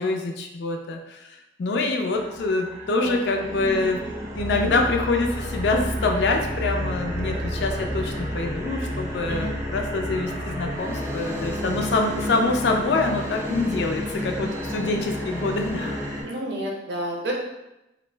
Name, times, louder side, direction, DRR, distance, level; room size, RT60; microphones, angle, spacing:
voice 1, 0.0-4.0 4.3-16.0, left 3 dB, 65° left, 3 dB, 0.4 m, -25 dB
sound 1, 2.1-16.2, equal, 15° right, 0.4 m, -30 dB
voice 2, 16.2-17.3, right 1 dB, 65° right, -1 dB, 0.6 m, -31 dB
2.5 x 2.1 x 3.2 m, 0.93 s
head